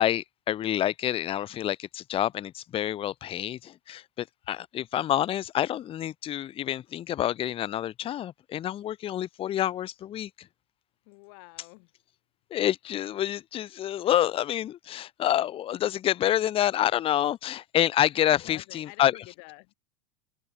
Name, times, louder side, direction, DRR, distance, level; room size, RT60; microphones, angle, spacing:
voice 1, 0.0-10.5 12.5-19.1, left 12 dB, 30° left, 0.9 m, -28 dB
voice 2, 11.1-11.9 18.3-19.7, left 38 dB, 50° left, 6.6 m, -49 dB
figure-of-eight pair, 85°, 19 cm